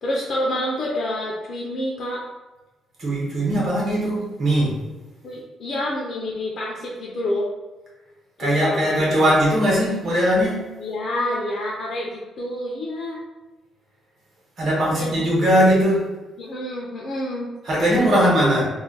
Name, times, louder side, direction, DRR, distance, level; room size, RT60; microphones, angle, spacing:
voice 1, 0.0-2.2 5.2-7.5 8.4-9.2 10.8-13.2 14.9-15.8 16.4-17.5 18.1-18.6, left 1 dB, 40° left, -3 dB, 0.4 m, -28 dB
voice 2, 3.0-4.8 8.4-10.7 14.6-16.1 17.6-18.7, equal, 40° right, -5 dB, 1.0 m, -20 dB
2.4 x 2.1 x 3.8 m, 1.2 s
cardioid pair, 170°, 0 cm